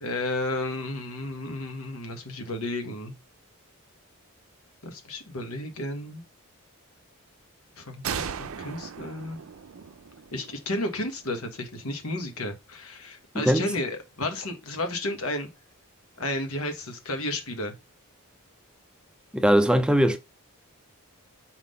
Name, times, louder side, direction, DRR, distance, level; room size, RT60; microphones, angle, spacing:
voice 1, 0.0-3.1 4.8-6.2 7.7-9.5 10.3-15.5 16.2-17.7, left 1 dB, 75° left, 1.5 m, -32 dB
sound 1, 8.0-11.6, right 7 dB, 65° right, 0.5 m, -37 dB
voice 2, 19.3-20.2, equal, 5° right, 0.4 m, -20 dB
4.7 x 3.8 x 5.4 m
head